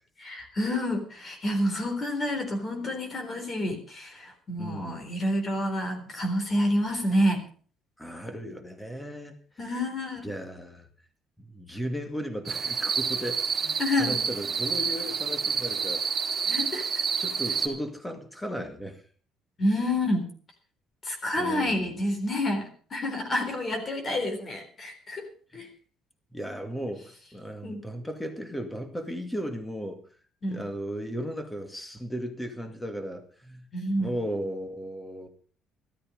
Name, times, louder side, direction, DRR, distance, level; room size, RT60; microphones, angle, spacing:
voice 1, 0.2-7.5 9.6-10.3 13.8-14.2 16.5-16.8 19.6-20.3 21.0-25.3 25.5-25.7 27.6-27.8 30.4-30.6 33.7-34.1, left 1 dB, 30° left, 4 dB, 3.9 m, -28 dB
voice 2, 4.6-5.1 8.0-9.4 10.2-10.9 11.4-16.0 17.2-19.0 21.4-21.9 26.3-30.0 30.5-33.7 34.0-35.3, equal, 5° left, 6 dB, 2.2 m, -36 dB
sound 1, 12.5-17.7, right 6 dB, 30° right, 3.2 m, -29 dB
13.5 x 13.0 x 5.2 m, 0.43 s
cardioid pair, 130°, 0 cm